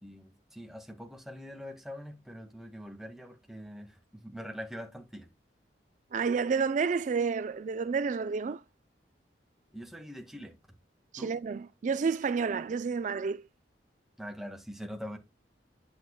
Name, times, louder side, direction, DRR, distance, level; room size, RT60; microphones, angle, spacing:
voice 1, 0.0-5.3 9.7-10.6 11.2-11.4 14.2-15.2, equal, ahead, 1.8 m, -43 dB
voice 2, 6.1-8.6 11.1-13.4, right 5 dB, 45° right, 0.4 m, -30 dB
9.0 x 8.5 x 2.2 m
head